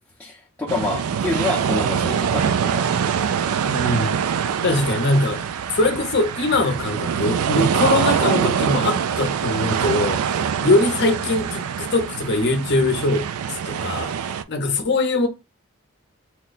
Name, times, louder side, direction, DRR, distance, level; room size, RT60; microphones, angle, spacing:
voice 1, 0.2-2.8, left 2 dB, 5° left, 0.7 m, -27 dB
sound 1, 0.7-14.4, right 7 dB, 85° right, 0.3 m, -24 dB
voice 2, 3.7-4.2 4.6-5.4 5.8-13.3 13.6-14.1 14.5-15.3, left 2 dB, 50° left, 0.7 m, -22 dB
2.9 x 2.2 x 3.9 m
head